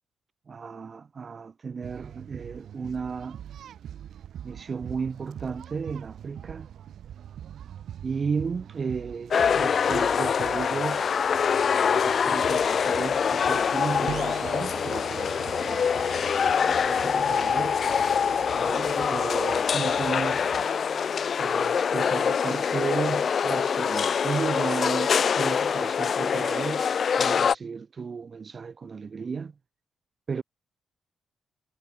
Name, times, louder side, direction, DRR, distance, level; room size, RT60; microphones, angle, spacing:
voice 1, 0.5-3.4 4.4-6.7 8.0-11.1 11.9-15.8 16.8-17.8 18.6-20.6 21.4-26.9 27.2-29.5 30.3-30.4, right 5 dB, 30° right, 1.0 m, -34 dB
sound 1, 1.8-20.7, right 10 dB, 65° right, 0.6 m, -44 dB
sound 2, 9.3-27.5, left 7 dB, 40° left, 0.4 m, -25 dB
sound 3, 14.1-21.7, right 11 dB, 80° right, 1.1 m, -45 dB
wide cardioid pair, 175°, 0 cm